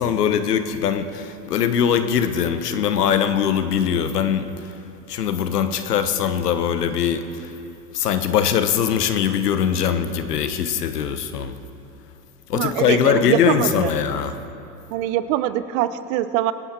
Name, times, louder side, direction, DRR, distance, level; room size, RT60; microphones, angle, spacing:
voice 1, 0.0-4.4 5.1-7.5 7.9-11.6 12.5-14.3, left 8 dB, 80° left, 10 dB, 1.1 m, -21 dB
voice 2, 12.5-13.9 14.9-16.5, right 13 dB, 60° right, 13 dB, 0.8 m, -23 dB
24.5 x 9.2 x 4.4 m, 2.8 s
hypercardioid pair, 85°, 46 cm